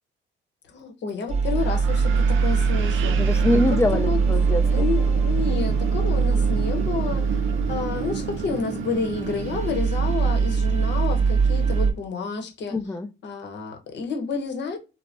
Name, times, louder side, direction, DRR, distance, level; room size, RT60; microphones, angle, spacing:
voice 1, 0.7-3.2 3.7-4.2 4.7-12.8 13.2-14.8, left 5 dB, 65° left, 0.9 m, -30 dB
sound 1, 1.3-11.9, right 5 dB, 35° right, 0.6 m, -22 dB
Wind, 1.6-11.9, right 7 dB, 75° right, 0.5 m, -32 dB
voice 2, 3.1-4.9 12.7-13.1, left 2 dB, 15° left, 0.4 m, -24 dB
3.3 x 2.1 x 2.5 m
cardioid pair, 90°, 20 cm